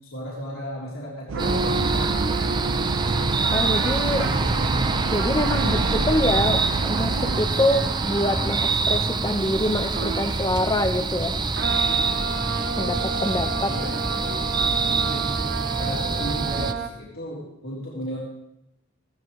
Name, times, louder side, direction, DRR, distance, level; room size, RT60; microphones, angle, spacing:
voice 1, 0.0-2.7 4.8-5.0 5.4-6.0 13.7-15.3 15.8-18.2, equal, 80° left, -6 dB, 3.6 m, -35 dB
sound 1, 1.3-8.8 9.9-10.3 11.5-16.9, right 4 dB, 50° right, 0.8 m, -32 dB
sound 2, 1.3-7.4, right 5 dB, 75° right, 0.5 m, -31 dB
sound 3, 1.4-16.7, right 3 dB, 20° right, 0.5 m, -25 dB
voice 2, 3.5-4.3 4.8-11.4 12.8-13.7, left 1 dB, 20° left, 8 dB, 0.8 m, -25 dB
16.5 x 14.0 x 3.2 m, 0.86 s
head